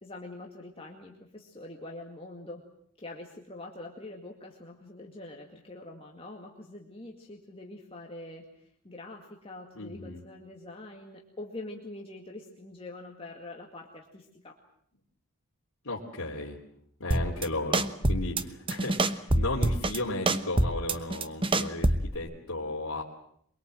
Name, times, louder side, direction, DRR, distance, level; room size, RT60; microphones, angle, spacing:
voice 1, 0.0-2.6 3.0-14.6, left 2 dB, 25° left, 0 dB, 2.1 m, -44 dB
voice 2, 9.8-10.2 15.8-16.6 17.0-23.0, left 2 dB, 70° left, -4 dB, 3.1 m, -35 dB
sound 1, 17.1-17.5 17.7-18.4 18.7-20.0 20.3-22.2, right 1 dB, 25° right, 1.0 m, -25 dB
24.0 x 23.0 x 7.7 m, 0.69 s
head